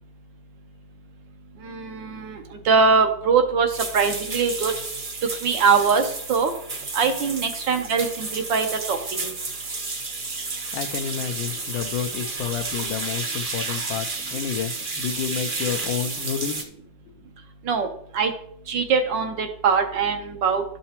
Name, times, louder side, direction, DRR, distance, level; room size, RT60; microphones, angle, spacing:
voice 1, 1.6-4.7 5.4-6.5 6.9-9.3 17.6-17.9 18.1-18.3 18.7-20.6, right 5 dB, 75° right, 5 dB, 1.6 m, -22 dB
sound 1, 3.7-16.6, right 3 dB, 40° right, 0.7 m, -31 dB
voice 2, 10.7-16.7, left 8 dB, 85° left, 6 dB, 1.3 m, -30 dB
12.0 x 5.4 x 2.9 m, 0.68 s
omnidirectional pair, 2.1 m